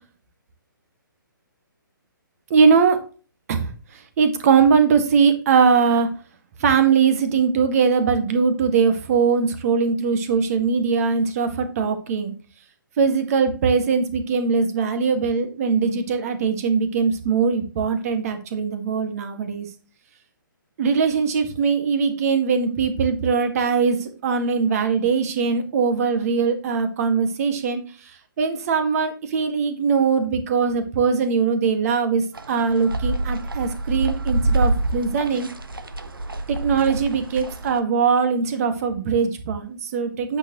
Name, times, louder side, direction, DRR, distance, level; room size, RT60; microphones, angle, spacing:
voice 1, 2.5-3.0 3.5-6.1 6.6-12.3 13.0-19.7 20.8-28.1 28.4-35.5 36.5-40.4, right 5 dB, 45° right, 8 dB, 1.8 m, -21 dB
sound 1, 32.3-37.8, right 2 dB, 85° right, 1.3 m, -26 dB
8.7 x 6.8 x 3.0 m, 0.37 s
figure-of-eight pair, 135°, 11 cm